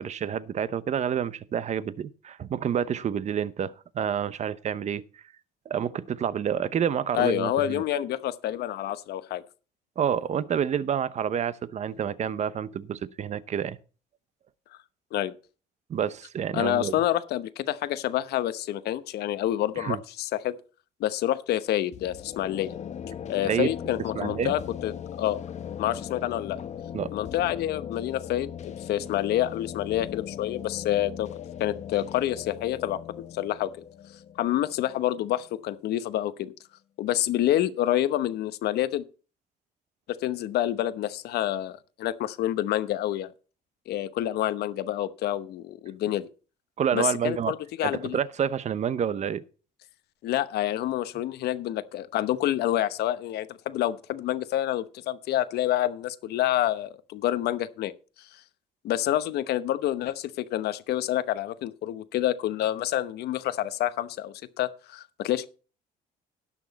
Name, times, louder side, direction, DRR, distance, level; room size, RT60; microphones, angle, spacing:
voice 1, 0.0-5.2 5.7-7.8 10.0-13.8 15.9-16.9 19.8-20.0 23.4-23.7 24.1-24.5 26.9-27.1 46.8-47.5 47.8-49.4, right 8 dB, 45° right, 0.8 m, -28 dB
voice 2, 7.1-9.4 15.1-15.3 16.5-20.5 21.0-22.8 23.3-24.9 25.2-25.4 25.8-26.6 27.1-31.3 31.6-33.0 33.3-33.7 34.4-36.5 37.0-39.0 40.1-43.3 43.9-46.3 46.9-48.2 50.2-57.9 58.2-58.4 58.8-65.5, left 13 dB, 75° left, 0.9 m, -28 dB
sound 1, 21.9-35.6, left 9 dB, 45° left, 0.8 m, -39 dB
18.0 x 6.2 x 4.1 m
cardioid pair, 110°, 17 cm